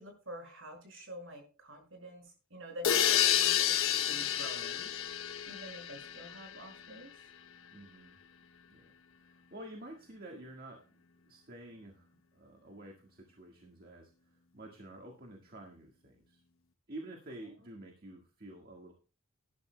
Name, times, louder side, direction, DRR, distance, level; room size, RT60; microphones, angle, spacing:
voice 1, 0.0-7.1, equal, 60° right, 4 dB, 5.6 m, -48 dB
sound 1, 2.8-6.6, left 10 dB, 65° left, 0.9 m, -30 dB
voice 2, 7.7-8.2 8.7-8.9 9.2-10.8 11.3-14.1 14.5-16.4 16.9-18.9, right 1 dB, 45° right, 1 dB, 1.7 m, -49 dB
17.5 x 11.5 x 2.2 m, 0.36 s
head